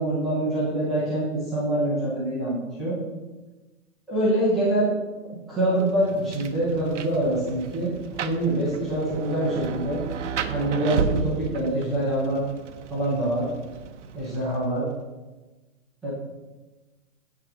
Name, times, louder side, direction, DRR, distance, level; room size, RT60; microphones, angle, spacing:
voice 1, 0.0-3.0 4.1-5.0 5.5-7.9 8.2-10.0 10.5-12.4 12.9-13.5 14.1-14.9 16.0-16.1, right 1 dB, ahead, -12 dB, 0.6 m, -25 dB
Rain, 5.8-14.8, right 6 dB, 60° right, 0.8 m, -34 dB
8.7 x 7.9 x 4.9 m, 1.2 s
hypercardioid pair, 170°, 42 cm